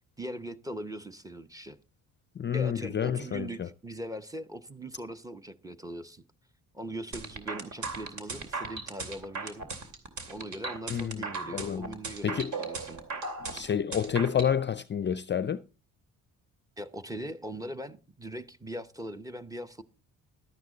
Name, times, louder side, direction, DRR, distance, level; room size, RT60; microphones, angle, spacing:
voice 1, 0.2-1.8 2.5-6.2 6.7-9.7 10.3-13.0 16.8-19.8, right 1 dB, 10° right, 0.9 m, -40 dB
voice 2, 2.4-3.7 10.9-11.2 11.5-11.9 12.2-12.5 13.5-15.6, left 8 dB, 30° left, 0.5 m, -29 dB
sound 1, 7.1-14.5, right 4 dB, 55° right, 2.7 m, -37 dB
12.0 x 9.4 x 3.9 m
cardioid pair, 90°, 35 cm